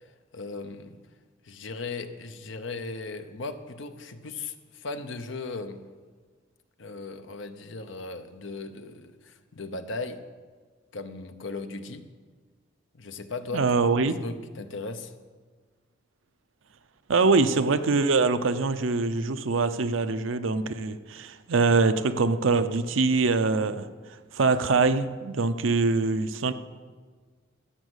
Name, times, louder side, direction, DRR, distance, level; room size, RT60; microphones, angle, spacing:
voice 1, 0.3-1.0 1.4-5.8 6.8-10.2 10.9-12.1 12.9-13.8 14.1-15.1, left 3 dB, 70° left, 9 dB, 0.8 m, -37 dB
voice 2, 13.5-14.2 17.1-23.9 24.3-26.5, right 3 dB, 75° right, 10 dB, 0.6 m, -23 dB
14.0 x 6.4 x 8.0 m, 1.5 s
head